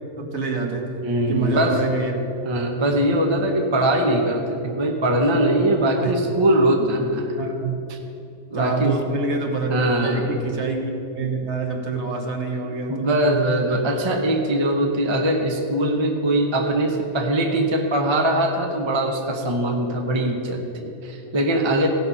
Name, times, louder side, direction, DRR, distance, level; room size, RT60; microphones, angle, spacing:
voice 1, 0.2-2.1 6.0-6.1 7.4-7.8 8.5-9.7 10.0-13.1, right 3 dB, 50° right, 2 dB, 1.3 m, -26 dB
voice 2, 1.0-1.8 2.4-7.3 7.9-8.0 8.5-8.9 9.7-10.3 12.9-21.9, right 1 dB, 25° right, 2 dB, 0.8 m, -21 dB
16.5 x 5.9 x 5.5 m, 2.9 s
omnidirectional pair, 1.6 m